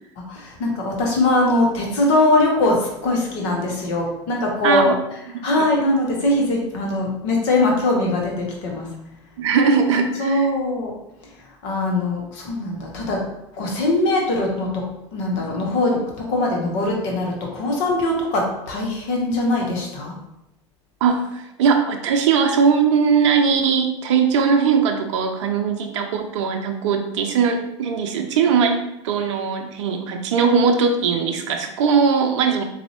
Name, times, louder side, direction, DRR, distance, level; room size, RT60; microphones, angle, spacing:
voice 1, 0.3-8.9 10.2-10.9 11.6-13.2 13.6-14.8 15.1-20.1, left 2 dB, 65° left, -1 dB, 1.1 m, -21 dB
voice 2, 4.6-5.0 5.3-5.5 9.4-10.5 21.0-32.6, right 6 dB, 80° right, 5 dB, 0.5 m, -20 dB
3.9 x 2.6 x 2.9 m, 0.84 s
hypercardioid pair, 80°, 15 cm